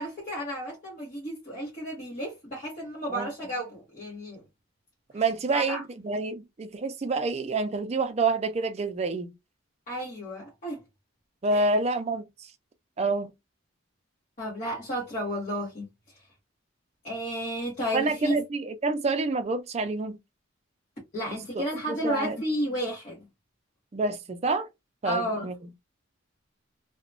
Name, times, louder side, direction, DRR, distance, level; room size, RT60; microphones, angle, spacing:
voice 1, 0.0-4.4 5.5-5.8 9.9-10.8 11.5-11.7 14.4-15.8 17.0-18.4 21.1-23.2 25.0-25.5, equal, 40° left, 1.1 m, -32 dB
voice 2, 5.1-9.3 11.4-12.3 13.0-13.3 17.9-20.2 21.5-22.4 23.9-24.7 25.0-25.6, right 3 dB, 30° right, 0.4 m, -28 dB
2.9 x 2.1 x 2.5 m
head